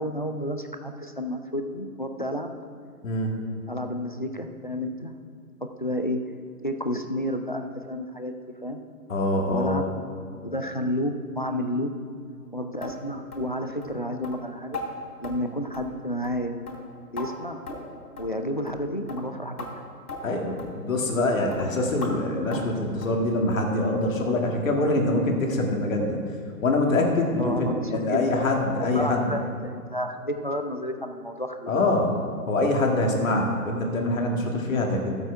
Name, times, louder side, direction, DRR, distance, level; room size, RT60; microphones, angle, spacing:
voice 1, 0.0-2.5 3.7-5.1 5.8-6.2 6.6-8.3 8.6-8.8 9.5-9.8 10.4-11.9 12.5-14.8 15.2-16.6 17.1-17.6 18.2-19.7 27.4-28.2 28.5-31.8, equal, 35° left, 6 dB, 0.4 m, -30 dB
voice 2, 3.0-3.3 9.1-9.8 20.2-26.2 26.6-29.4 31.7-32.1 32.5-35.1, left 2 dB, 55° left, 1 dB, 2.0 m, -24 dB
sound 1, 12.8-13.0 13.3-13.5 13.8-13.9 14.2-14.4 14.7-14.9 15.2-15.4 15.7-16.0 16.2-16.4 16.7-17.3 17.7-17.9 18.2-18.3 18.7-18.8 19.1-19.2 19.6-19.7 20.1-20.2 20.6-20.7 21.1-21.2 21.5-21.6 22.0-22.1 22.5-22.7 23.0-23.2 23.5-23.7 24.0-24.1 24.5-24.6 25.0-25.1, left 3 dB, 80° left, 3.2 m, -37 dB
13.5 x 8.0 x 4.7 m, 2.2 s
hypercardioid pair, 170°, 46 cm